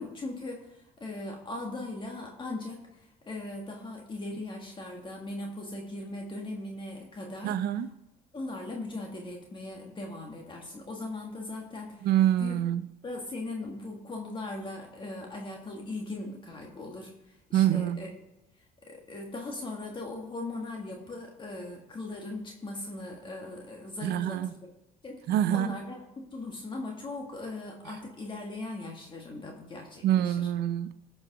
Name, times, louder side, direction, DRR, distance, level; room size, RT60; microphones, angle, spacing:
voice 1, 0.0-7.6 8.3-12.1 12.4-12.6 13.0-18.1 18.9-24.5 25.0-30.5, left 2 dB, 30° left, 1.7 m, -39 dB
voice 2, 7.4-7.9 12.0-12.8 17.5-18.1 24.0-24.5 25.3-25.8 30.0-30.9, right 11 dB, 70° right, 0.5 m, -26 dB
14.5 x 5.4 x 4.8 m
cardioid pair, 110°, 17 cm